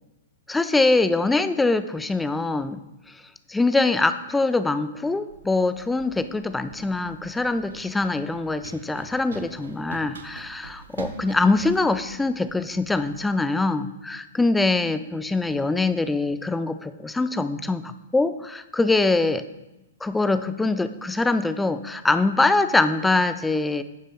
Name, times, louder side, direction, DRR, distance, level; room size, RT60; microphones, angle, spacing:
voice 1, 0.5-2.8 3.5-19.4 20.0-23.8, left 3 dB, 5° left, 11 dB, 0.4 m, -23 dB
Run, 5.3-13.2, right 4 dB, 65° right, 0.8 m, -44 dB
15.0 x 7.2 x 2.3 m, 0.97 s
figure-of-eight pair, 105°, 0 cm